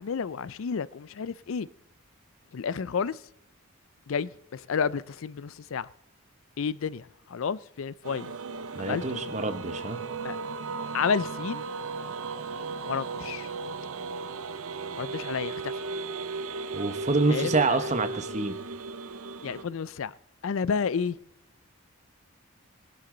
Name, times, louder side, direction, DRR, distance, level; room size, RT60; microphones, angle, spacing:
voice 1, 0.0-1.7 2.5-3.2 4.1-5.9 6.6-8.3 8.8-9.2 10.2-10.4 10.9-11.7 12.9-13.5 15.0-15.7 17.3-17.8 19.4-20.1 20.4-21.2, left 6 dB, 65° left, 0.4 m, -31 dB
sound 1, 8.0-19.6, right 4 dB, 75° right, 0.7 m, -36 dB
voice 2, 8.8-10.0 16.7-18.6, right 3 dB, 30° right, 1.1 m, -27 dB
19.5 x 11.0 x 3.9 m
head